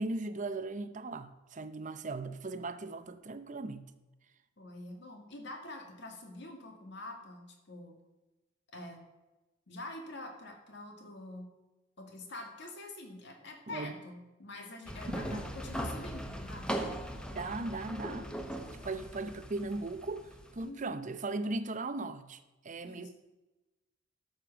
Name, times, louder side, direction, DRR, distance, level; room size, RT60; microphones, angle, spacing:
voice 1, 0.0-3.9 13.7-13.9 15.1-15.4 17.3-18.3 18.8-22.4 22.6-23.1, right 2 dB, 40° right, 0.7 m, -38 dB
voice 2, 4.6-8.0 8.7-9.0 9.7-11.5 12.0-16.7 20.6-21.0 22.8-23.1, left 2 dB, 60° left, 2.1 m, -46 dB
sound 1, 14.9-20.7, equal, 5° left, 1.0 m, -39 dB
12.5 x 6.7 x 6.0 m
head